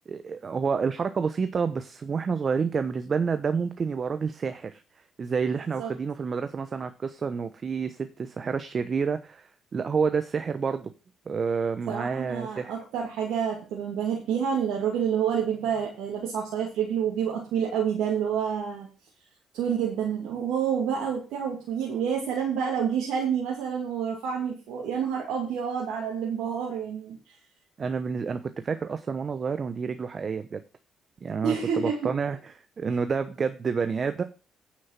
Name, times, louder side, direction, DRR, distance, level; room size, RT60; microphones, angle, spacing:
voice 1, 0.1-4.8 5.2-10.9 11.3-12.7 27.8-30.6 31.2-32.4 32.8-34.2, right 5 dB, 45° right, 9 dB, 0.9 m, -29 dB
voice 2, 11.9-18.9 19.5-27.3 31.4-32.1, right 7 dB, 75° right, -2 dB, 2.5 m, -28 dB
9.6 x 6.4 x 5.9 m, 0.32 s
hypercardioid pair, 55°, 0 cm